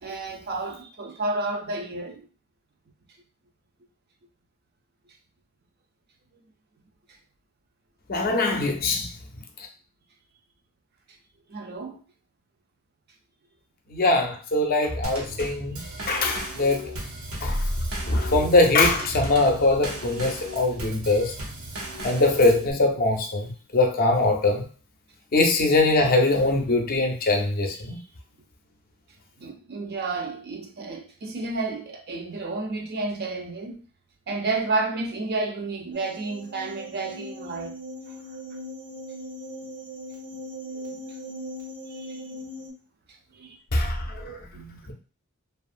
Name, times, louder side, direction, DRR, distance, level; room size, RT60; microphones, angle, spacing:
voice 1, 0.0-2.3 11.5-12.0 18.0-18.1 27.9-28.0 29.4-33.8 34.3-37.8 40.7-41.0 41.9-42.3 43.3-43.6 44.5-44.6, right 3 dB, 50° right, 0.5 m, -31 dB
voice 2, 8.1-9.1 13.9-15.8 16.1-16.9 17.4-17.6 18.1-21.3 22.0-24.6 25.3-28.0 43.7-44.9, left 2 dB, 45° left, 0.5 m, -22 dB
Drum kit / Snare drum / Bass drum, 15.0-22.7, right 1 dB, 90° right, 0.8 m, -36 dB
sound 1, 35.9-42.7, equal, 65° right, 0.9 m, -39 dB
2.7 x 2.4 x 2.4 m
head